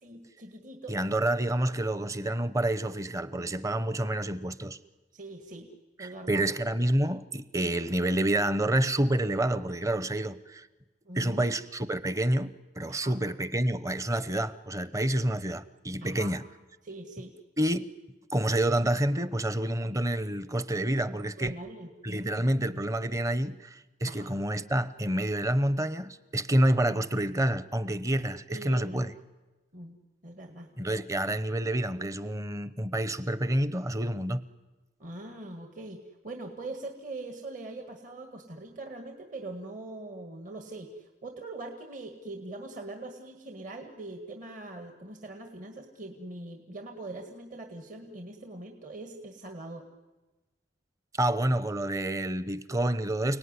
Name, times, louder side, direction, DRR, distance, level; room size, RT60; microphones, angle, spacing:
voice 1, 0.0-1.0 5.1-5.7 6.0-6.4 11.1-11.4 12.9-13.2 16.0-16.3 16.8-17.3 21.4-22.5 24.1-24.3 28.5-29.0 29.7-30.0 30.2-30.7 35.0-49.9, right 2 dB, 45° right, 1.9 m, -42 dB
voice 2, 0.9-4.8 6.0-10.7 11.1-16.4 17.6-17.9 18.3-21.6 22.0-29.1 30.8-34.4 51.2-53.4, right 1 dB, 20° right, 0.8 m, -28 dB
30.0 x 18.5 x 9.8 m
head